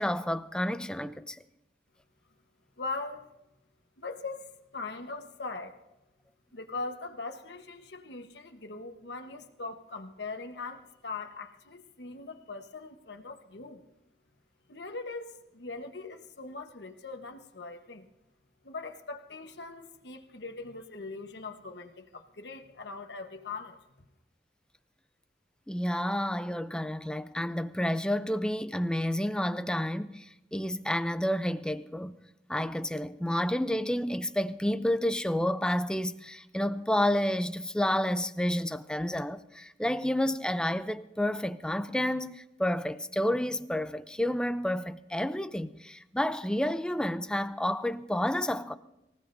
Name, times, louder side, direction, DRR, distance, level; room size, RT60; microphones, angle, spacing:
voice 1, 0.0-1.4 25.7-32.2 32.5-48.8, left 1 dB, 5° left, 0.4 m, -30 dB
voice 2, 2.8-3.3 4.0-5.8 6.5-13.8 14.7-18.1 18.6-23.8, left 3 dB, 75° left, 1.1 m, -41 dB
25.0 x 16.0 x 2.6 m
head